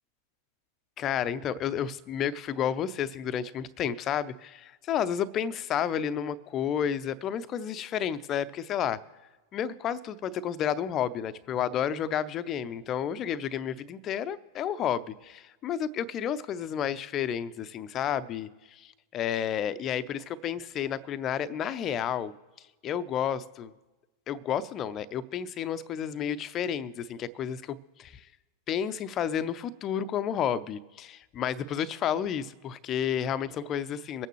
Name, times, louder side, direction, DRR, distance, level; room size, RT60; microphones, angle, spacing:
voice 1, 1.0-9.0 9.5-22.3 22.8-23.7 24.3-28.2 28.7-34.3, left 9 dB, 30° left, 15 dB, 0.6 m, -31 dB
24.0 x 9.0 x 3.1 m, 1.2 s
figure-of-eight pair, 90°, 0 cm